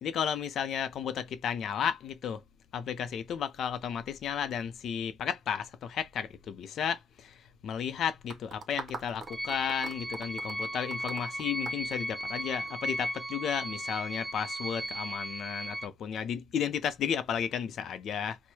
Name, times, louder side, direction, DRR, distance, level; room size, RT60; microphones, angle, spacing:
voice 1, 0.0-2.4 2.7-7.4 7.6-18.4, left 8 dB, 70° left, 0.6 m, -33 dB
sound 1, 8.3-12.7, right 4 dB, 55° right, 0.8 m, -43 dB
sound 2, 9.3-15.9, equal, 10° right, 0.7 m, -36 dB
4.4 x 2.2 x 2.8 m
cardioid pair, 90°, 0 cm